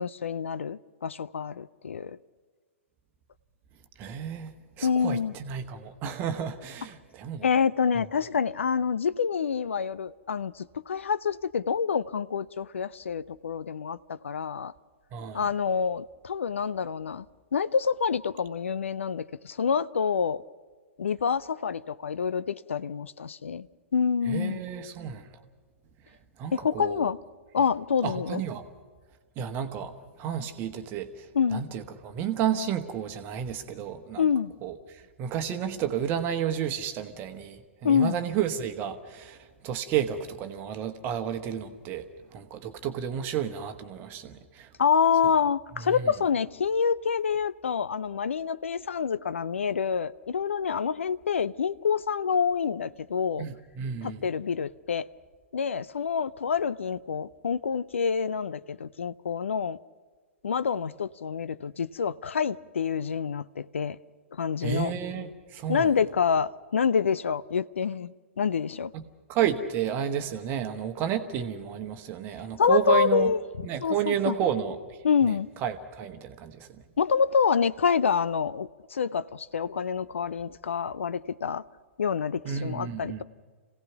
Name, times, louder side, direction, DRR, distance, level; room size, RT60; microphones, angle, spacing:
voice 1, 0.0-2.2 4.8-5.4 7.4-14.7 15.3-17.2 17.5-20.4 21.0-23.7 23.9-24.6 26.5-27.2 27.5-28.4 31.3-31.6 34.2-34.5 37.8-38.2 44.8-53.5 54.0-55.1 55.5-59.8 60.4-64.0 64.3-64.9 65.7-68.9 72.6-73.4 73.8-74.3 75.0-75.5 77.0-81.6 82.0-83.2, left 6 dB, 65° left, 0.5 m, -27 dB
voice 2, 4.0-7.5 15.1-15.5 24.3-25.3 26.4-27.1 28.0-28.6 29.4-34.2 34.6-42.0 42.3-44.7 45.8-46.1 53.4-54.2 64.6-65.9 68.9-69.0 69.3-73.3 73.6-75.0 75.2-76.7 82.4-83.2, right 8 dB, 30° right, 1.2 m, -31 dB
27.0 x 17.0 x 5.9 m
figure-of-eight pair, 115°, 7 cm